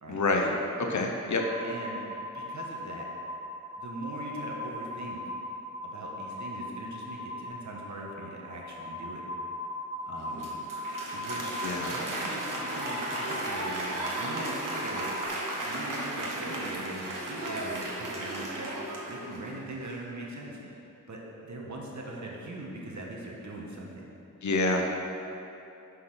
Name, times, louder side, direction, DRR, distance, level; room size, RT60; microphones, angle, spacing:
voice 1, 0.1-1.4 11.6-11.9 24.4-24.9, left 2 dB, 65° left, 2 dB, 0.8 m, -27 dB
sound 1, 1.4-15.3, left 1 dB, 15° right, 0.6 m, -39 dB
voice 2, 1.6-3.1 3.8-5.2 5.8-9.2 10.1-10.5 11.1-11.5 11.9-15.1 15.5-24.1, right 1 dB, 65° right, -2 dB, 1.3 m, -41 dB
Applause, 10.1-19.7, right 1 dB, 85° right, 1.2 m, -35 dB
6.4 x 5.7 x 5.8 m, 2.8 s
wide cardioid pair, 90°, 31 cm